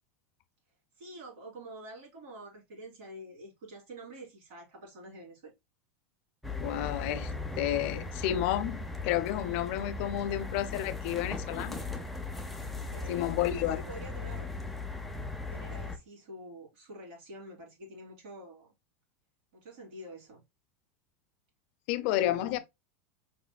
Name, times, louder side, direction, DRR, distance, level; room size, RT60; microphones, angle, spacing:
voice 1, 1.0-5.5 12.9-14.5 15.5-18.7 19.5-20.4 22.2-22.6, right 1 dB, 65° right, 3.0 m, -47 dB
sound 1, 6.4-16.0, left 3 dB, ahead, 0.5 m, -38 dB
voice 2, 6.6-11.8 13.1-13.8 21.9-22.6, left 13 dB, 55° left, 0.5 m, -31 dB
5.0 x 3.3 x 2.2 m
supercardioid pair, 150°, 7 cm